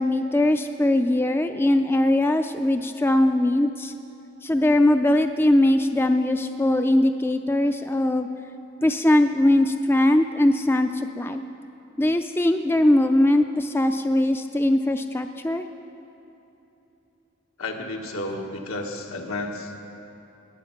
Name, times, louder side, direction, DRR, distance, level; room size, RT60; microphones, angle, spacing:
voice 1, 0.0-3.9 4.4-8.3 8.8-11.4 12.0-15.7, left 1 dB, 10° left, 7 dB, 0.3 m, -21 dB
voice 2, 17.6-19.7, left 2 dB, 85° left, 2 dB, 1.4 m, -32 dB
19.5 x 8.0 x 5.8 m, 3.0 s
head